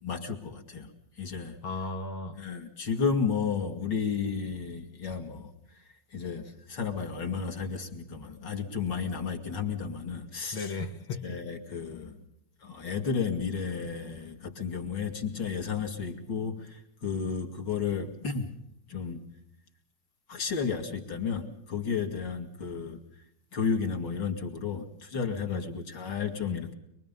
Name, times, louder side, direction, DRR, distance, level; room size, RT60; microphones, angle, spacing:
voice 1, 0.0-0.9 1.2-1.6 2.4-5.5 6.1-10.8 11.2-12.2 12.6-18.5 18.9-19.2 20.3-23.0 23.5-26.7, left 6 dB, 60° left, 3.1 m, -32 dB
voice 2, 1.6-2.4 10.5-11.4 25.5-25.9 26.5-26.7, left 3 dB, 90° left, 2.7 m, -36 dB
24.5 x 23.5 x 5.4 m
omnidirectional pair, 2.2 m